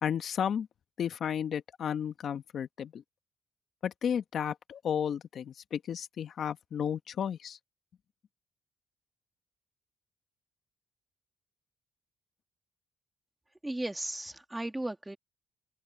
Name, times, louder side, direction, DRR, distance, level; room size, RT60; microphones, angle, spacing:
voice 1, 0.0-0.7 1.0-3.0 3.8-7.6, left 8 dB, 60° left, 1.1 m, -33 dB
voice 2, 13.6-15.2, right 1 dB, 10° right, 2.6 m, -35 dB
open air
cardioid pair, 90°, 0 cm